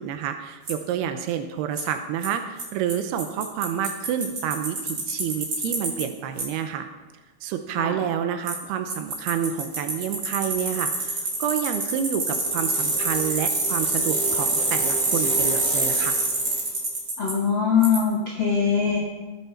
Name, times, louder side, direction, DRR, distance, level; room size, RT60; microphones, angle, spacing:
voice 1, 0.0-6.9 7.4-16.2, right 9 dB, 90° right, 7 dB, 2.8 m, -29 dB
Bicycle, 0.7-0.8 1.8-1.9 2.2-2.3 2.6-2.7 2.9-3.0 3.2-6.0 6.4-6.5 8.5-8.6 8.9-17.3 17.8-18.0, right 2 dB, 30° right, 2.8 m, -25 dB
voice 2, 17.2-19.0, left 6 dB, 45° left, -3 dB, 1.7 m, -22 dB
20.5 x 9.1 x 4.5 m, 1.2 s
omnidirectional pair, 4.6 m